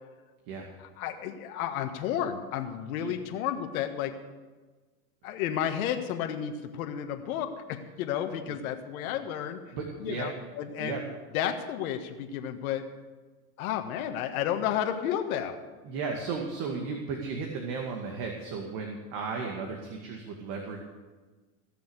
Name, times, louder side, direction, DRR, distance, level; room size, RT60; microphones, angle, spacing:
voice 1, 1.0-4.1 5.2-9.6 10.0-11.0 11.3-12.9 13.6-15.6, left 9 dB, 75° left, 5 dB, 1.5 m, -32 dB
voice 2, 9.7-10.3 10.8-11.0 15.8-20.8, right 4 dB, 55° right, 1 dB, 2.3 m, -35 dB
17.0 x 6.8 x 8.1 m, 1.3 s
supercardioid pair, 120°, 43 cm